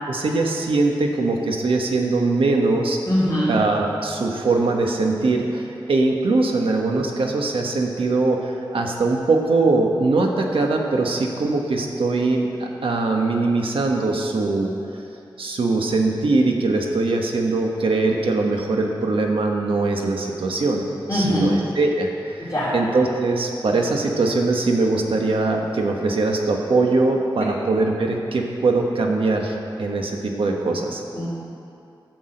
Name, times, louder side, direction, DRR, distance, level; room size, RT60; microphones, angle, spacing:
voice 1, 0.1-3.0 3.5-14.7 15.4-31.0, right 3 dB, 85° right, 1 dB, 1.4 m, -21 dB
voice 2, 3.0-3.5 21.1-21.5 22.4-22.7 31.1-31.3, equal, 30° left, -11 dB, 3.3 m, -22 dB
12.5 x 6.4 x 7.8 m, 2.6 s
wide cardioid pair, 110°, 9 cm